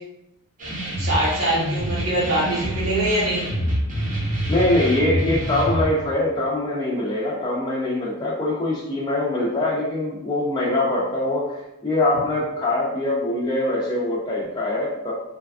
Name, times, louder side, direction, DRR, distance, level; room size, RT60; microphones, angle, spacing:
sound 1, 0.6-5.8, right 1 dB, 35° right, 0.7 m, -26 dB
voice 1, 1.0-3.5, right 1 dB, 80° right, -8 dB, 1.0 m, -23 dB
voice 2, 4.5-15.1, left 1 dB, 20° left, -5 dB, 0.4 m, -23 dB
3.3 x 2.3 x 2.3 m, 0.89 s
head